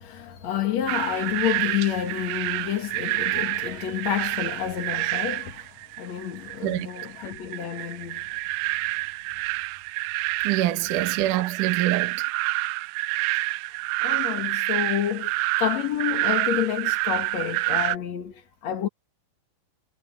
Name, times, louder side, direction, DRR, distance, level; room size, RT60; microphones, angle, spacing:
voice 1, 0.0-8.3 14.0-18.9, left 10 dB, 65° left, 1.7 m, -29 dB
sound 1, 0.9-18.0, right 21 dB, 85° right, 3.1 m, -28 dB
voice 2, 10.4-12.3, right 14 dB, 65° right, 2.0 m, -25 dB
omnidirectional pair, 5.8 m